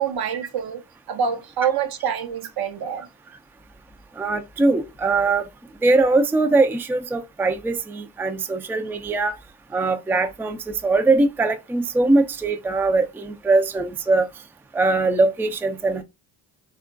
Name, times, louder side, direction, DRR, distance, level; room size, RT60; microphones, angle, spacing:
voice 1, 0.0-3.1, right 7 dB, 55° right, 0.7 m, -26 dB
voice 2, 4.2-5.4 5.8-9.4 9.7-10.6 10.8-14.3 14.7-16.0, right 3 dB, 5° right, 0.4 m, -21 dB
3.6 x 2.3 x 2.4 m
hypercardioid pair, 50°, 44 cm